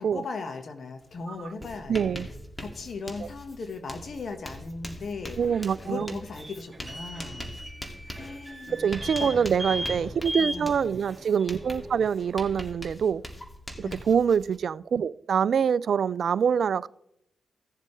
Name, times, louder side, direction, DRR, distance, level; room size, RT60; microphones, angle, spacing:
voice 1, 0.0-2.0 2.6-7.5 8.0-9.4 9.7-10.8 13.8-14.1, left 4 dB, 65° left, 1.4 m, -38 dB
Writing, 1.0-1.2 1.4-14.6, left 1 dB, 20° left, 2.2 m, -42 dB
voice 2, 1.9-2.3 5.4-6.1 8.7-13.2 13.8-16.9, right 7 dB, 70° right, 0.3 m, -25 dB
sound 1, 5.4-12.7, equal, 15° right, 2.8 m, -38 dB
16.5 x 7.4 x 3.2 m
supercardioid pair, 40°, 0 cm